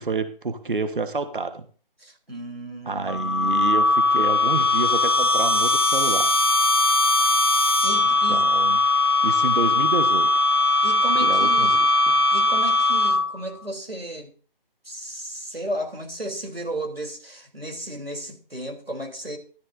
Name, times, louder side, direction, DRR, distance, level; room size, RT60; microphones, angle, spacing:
voice 1, 0.0-1.7 2.8-6.3 8.0-8.8 9.2-10.4 11.2-12.2, right 3 dB, 60° right, 1.4 m, -29 dB
voice 2, 2.0-3.8 7.8-8.4 10.8-11.8 12.3-14.3 14.9-19.4, right 1 dB, 90° right, 3.5 m, -34 dB
sound 1, 3.1-13.5, left 2 dB, 25° left, 0.5 m, -20 dB
14.0 x 13.0 x 2.7 m
figure-of-eight pair, 155°, 29 cm